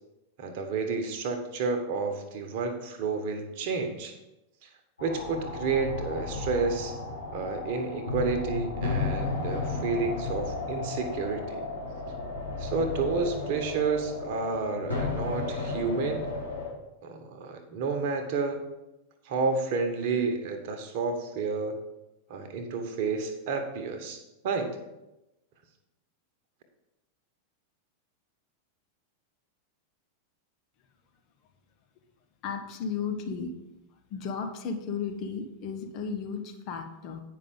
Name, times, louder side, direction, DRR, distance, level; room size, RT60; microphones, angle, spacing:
voice 1, 0.4-4.1 4.6-4.7 5.0-7.0 7.3-11.6 12.6-16.3 17.0-18.6 19.2-21.7 22.3-24.7, right 4 dB, 45° right, 5 dB, 1.4 m, -30 dB
sound 1, 5.0-16.7, left 3 dB, 80° left, 2.2 m, -34 dB
voice 2, 32.4-33.5 34.1-37.2, left 5 dB, 40° left, 4 dB, 1.3 m, -34 dB
9.2 x 5.8 x 5.3 m, 0.97 s
figure-of-eight pair, 90°, 0 cm